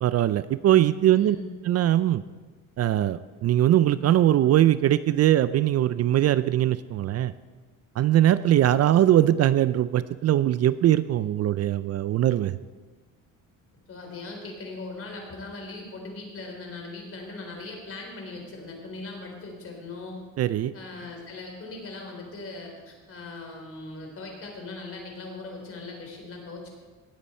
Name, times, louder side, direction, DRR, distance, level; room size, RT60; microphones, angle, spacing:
voice 1, 0.0-1.4 1.6-2.2 2.8-7.3 8.0-12.6 20.4-20.7, right 12 dB, 45° right, 15 dB, 0.4 m, -21 dB
voice 2, 1.1-1.5 13.9-20.2 20.7-26.7, left 3 dB, 40° left, 1 dB, 3.9 m, -39 dB
18.0 x 8.2 x 4.4 m, 1.4 s
cardioid pair, 100°, 35 cm